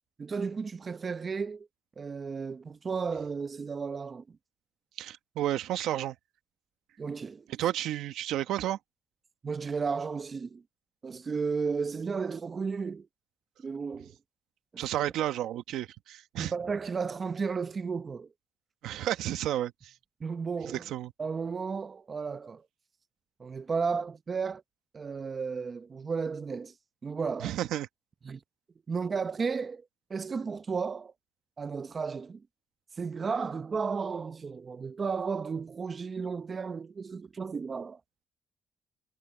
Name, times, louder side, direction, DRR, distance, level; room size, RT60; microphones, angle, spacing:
voice 1, 0.2-1.7 2.0-4.2 7.0-7.5 9.4-10.6 11.0-13.1 13.6-14.1 14.7-14.9 16.4-18.3 20.2-20.9 21.2-22.7 23.4-24.6 24.9-26.7 27.0-27.5 28.2-28.4 28.9-29.8 30.1-31.1 31.6-32.4 33.0-38.0, right 5 dB, 40° right, 0.8 m, -33 dB
voice 2, 5.0-6.1 7.5-8.8 14.8-16.5 18.8-19.9 20.6-21.1 27.4-27.9, right 12 dB, 85° right, 1.2 m, -32 dB
cardioid pair, 90°, 0 cm